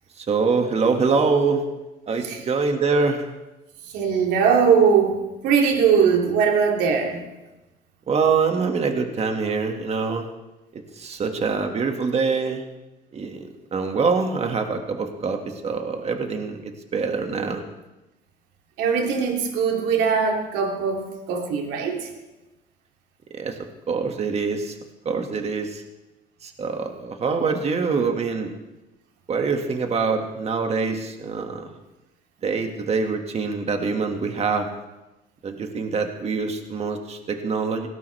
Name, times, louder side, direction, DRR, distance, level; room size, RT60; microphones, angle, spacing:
voice 1, 0.2-1.6 2.1-3.3 8.1-10.2 10.7-12.6 13.1-17.6 23.3-23.6 23.9-24.8 25.1-25.8 26.4-28.5 29.3-31.7 32.4-34.7 35.4-37.9, right 4 dB, 40° right, 4 dB, 2.0 m, -24 dB
voice 2, 3.9-7.2 18.8-22.1, right 6 dB, 90° right, 1 dB, 2.8 m, -20 dB
18.5 x 17.5 x 3.5 m, 1.0 s
cardioid pair, 110°, 17 cm